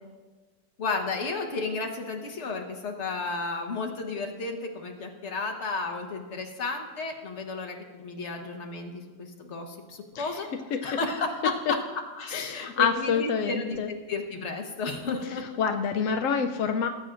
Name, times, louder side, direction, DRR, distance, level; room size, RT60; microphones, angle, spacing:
voice 1, 0.8-10.5 10.8-11.8 12.2-15.4, left 3 dB, 45° left, 2 dB, 1.4 m, -33 dB
voice 2, 12.3-13.9 15.2-16.9, left 6 dB, 70° left, 5 dB, 0.8 m, -27 dB
19.0 x 8.9 x 2.5 m, 1.3 s
omnidirectional pair, 1.8 m